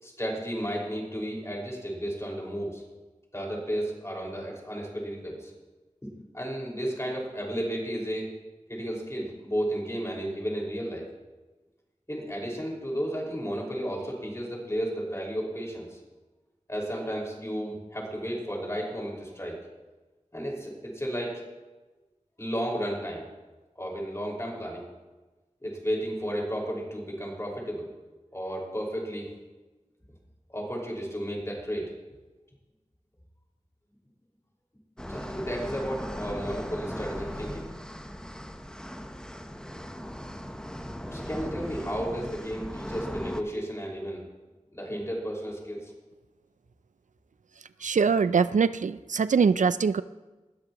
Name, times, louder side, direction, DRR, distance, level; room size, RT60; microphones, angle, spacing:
voice 1, 0.0-2.8 3.3-5.5 6.0-8.3 8.7-11.1 12.1-16.0 16.7-19.6 20.3-21.4 22.4-23.3 23.8-24.9 25.6-27.9 28.3-29.3 30.5-31.9 35.1-37.7 41.1-44.2 44.7-45.9, equal, 20° left, -2 dB, 5.1 m, -33 dB
sound 1, 35.0-43.4, equal, 5° left, 0.9 m, -38 dB
voice 2, 47.8-50.0, right 5 dB, 85° right, 14 dB, 0.4 m, -23 dB
20.0 x 13.0 x 3.0 m, 1.2 s
wide cardioid pair, 50°, 13 cm